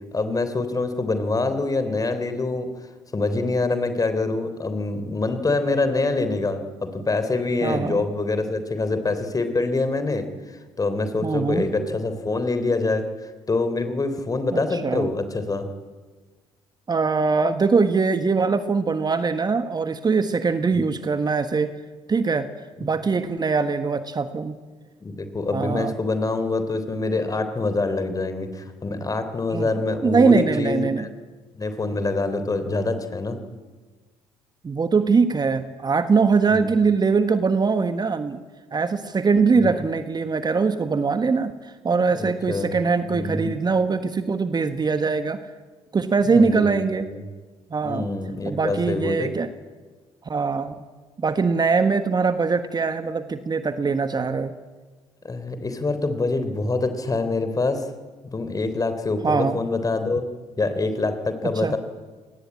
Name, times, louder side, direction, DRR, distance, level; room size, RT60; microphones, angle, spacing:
voice 1, 0.1-2.7 3.1-13.1 13.5-15.6 20.7-20.8 25.0-31.1 31.5-33.4 36.5-36.8 39.6-39.7 42.2-42.7 43.1-43.5 46.2-46.7 47.1-47.2 47.8-49.3 55.2-57.9 58.2-60.2 60.6-61.8, left 3 dB, 25° left, 10 dB, 3.4 m, -25 dB
voice 2, 7.6-8.1 11.2-11.6 14.5-15.1 16.9-21.7 22.1-22.5 22.8-24.6 25.5-25.9 29.5-29.7 30.0-31.1 34.6-38.4 38.7-45.4 45.9-47.0 47.7-48.1 48.4-49.5 50.2-50.7 51.2-54.5 59.2-59.6 61.4-61.8, right 4 dB, 25° right, 10 dB, 1.4 m, -22 dB
25.5 x 19.0 x 8.6 m, 1.4 s
figure-of-eight pair, 50°, 15 cm